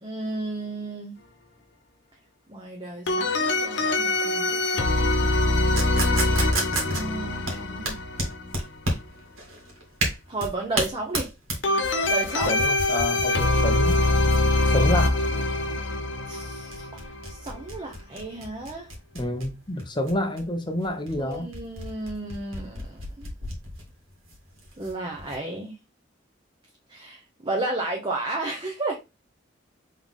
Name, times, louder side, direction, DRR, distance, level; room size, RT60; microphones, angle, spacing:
voice 1, 0.0-1.2 2.5-5.4 5.9-6.4 6.9-8.0 10.3-11.3 12.1-12.5 16.3-17.0 17.3-18.9 21.2-23.3 24.8-25.7 26.9-29.0, right 2 dB, 25° right, 0.8 m, -33 dB
sound 1, 3.1-8.7 11.6-17.7, left 2 dB, 65° left, 0.8 m, -24 dB
sound 2, 5.7-25.4, right 1 dB, 90° right, 1.9 m, -33 dB
voice 2, 12.5-14.0 14.6-15.2 19.1-21.5, left 1 dB, 25° left, 0.7 m, -28 dB
3.9 x 3.7 x 3.5 m
head